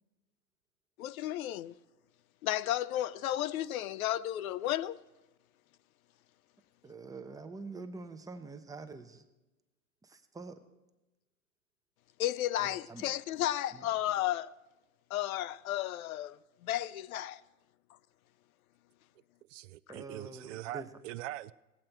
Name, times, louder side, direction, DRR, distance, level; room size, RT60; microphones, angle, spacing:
voice 1, 1.0-1.7 2.4-5.0 12.2-14.5 15.1-17.4, left 13 dB, 70° left, 0.5 m, -33 dB
voice 2, 6.8-9.2 10.0-10.6 12.6-13.1 13.7-13.9 19.9-20.9, right 3 dB, 10° right, 0.7 m, -46 dB
voice 3, 19.5-21.5, right 15 dB, 55° right, 0.5 m, -42 dB
18.0 x 7.6 x 4.5 m
hypercardioid pair, 100°, 44 cm